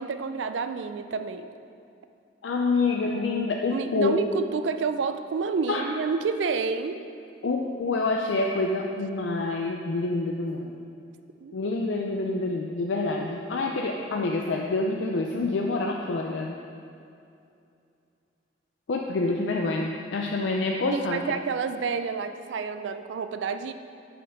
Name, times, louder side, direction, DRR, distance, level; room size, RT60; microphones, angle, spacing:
voice 1, 0.0-1.5 3.7-7.0 11.4-11.5 20.9-23.7, right 5 dB, 80° right, 9 dB, 0.4 m, -29 dB
voice 2, 2.4-4.2 5.7-5.9 7.4-10.8 11.5-16.6 18.9-21.2, left 3 dB, 85° left, 1 dB, 0.5 m, -27 dB
6.3 x 4.7 x 6.4 m, 2.5 s
head